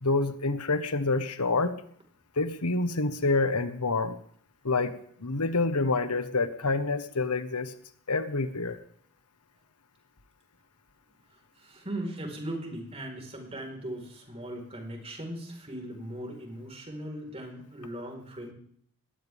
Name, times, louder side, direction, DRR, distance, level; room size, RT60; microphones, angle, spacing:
voice 1, 0.0-1.7 2.4-4.2 4.6-7.7 8.1-8.8, left 3 dB, 90° left, 10 dB, 1.4 m, -27 dB
voice 2, 11.6-18.5, right 1 dB, 30° right, 2 dB, 4.7 m, -38 dB
21.0 x 18.5 x 3.6 m, 0.63 s
head